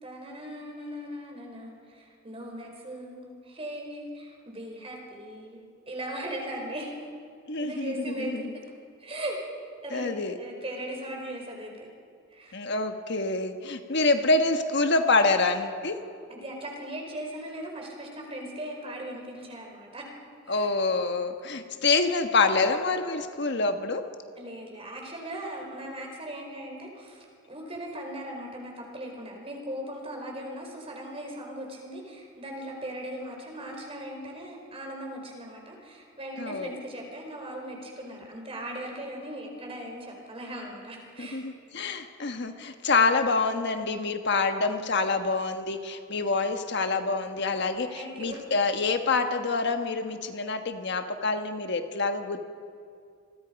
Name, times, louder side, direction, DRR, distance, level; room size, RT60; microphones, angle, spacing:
voice 1, 0.0-7.1 7.6-8.6 9.0-9.4 9.8-11.9 12.3-12.6 16.3-20.1 20.4-20.7 24.4-41.4 47.9-48.4, right 1 dB, 30° right, 1 dB, 4.6 m, -39 dB
voice 2, 7.5-8.4 9.9-10.4 12.5-16.0 20.5-24.1 36.4-36.7 41.2-52.4, left 3 dB, 60° left, 6 dB, 1.3 m, -26 dB
28.0 x 21.5 x 5.3 m, 2.2 s
head